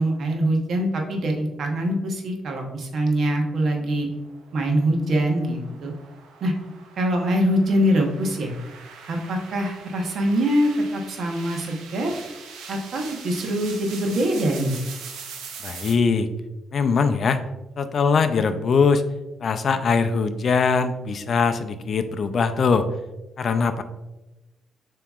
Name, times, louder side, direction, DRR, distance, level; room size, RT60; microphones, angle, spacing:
voice 1, 0.0-4.1 4.5-5.9 6.4-6.5 7.0-8.5 9.1-12.1 12.7-14.7, right 1 dB, 60° right, 2 dB, 0.9 m, -23 dB
sound 1, 3.9-15.9, right 6 dB, 85° right, 0.6 m, -42 dB
voice 2, 15.6-16.3 16.7-17.4 17.8-19.0 19.4-22.9 23.4-23.8, left 5 dB, 50° left, 9 dB, 0.3 m, -21 dB
6.9 x 2.9 x 2.4 m, 1.0 s
cardioid pair, 90°, 0 cm